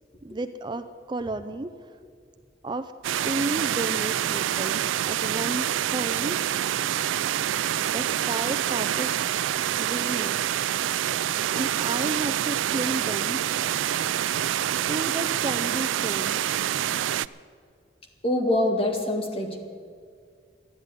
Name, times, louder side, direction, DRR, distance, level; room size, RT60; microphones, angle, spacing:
voice 1, 0.2-1.7 2.6-2.9 3.2-6.5 7.9-9.1 9.8-10.4 11.5-13.4 14.9-16.4, right 2 dB, 25° right, 8 dB, 0.4 m, -32 dB
sound 1, 3.0-17.3, right 11 dB, 90° right, 0.3 m, -26 dB
voice 2, 18.2-19.6, left 1 dB, 30° left, 3 dB, 1.9 m, -25 dB
12.5 x 10.5 x 9.6 m, 2.2 s
head